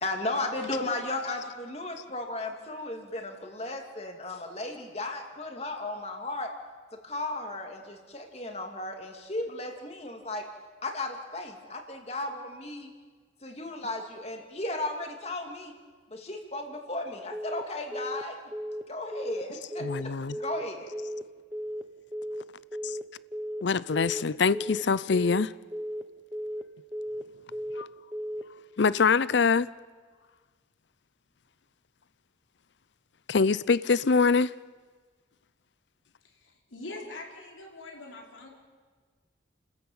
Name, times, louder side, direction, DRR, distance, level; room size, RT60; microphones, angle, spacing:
voice 1, 0.0-6.5 6.9-10.5 10.8-12.9 13.4-15.8 16.1-18.4 18.9-21.0, left 2 dB, 35° left, 2.6 m, -35 dB
Telephone, 17.3-17.6 17.9-18.2 18.5-18.8 19.1-19.4 19.7-20.0 20.3-20.6 20.9-21.2 21.5-21.8 22.1-22.4 22.7-23.0 23.3-23.6 23.9-24.2 24.5-24.8 25.1-25.4 25.7-26.0 26.3-26.6 26.9-27.2 27.5-27.8 28.1-28.4, equal, 10° right, 1.1 m, -35 dB
voice 2, 19.8-20.4 22.8-22.9 23.6-25.5 27.8-27.9 28.8-29.7 33.3-34.5, left 5 dB, 70° left, 0.6 m, -24 dB
voice 3, 36.4-38.5, left 2 dB, 90° left, 4.6 m, -43 dB
29.5 x 14.0 x 8.8 m
head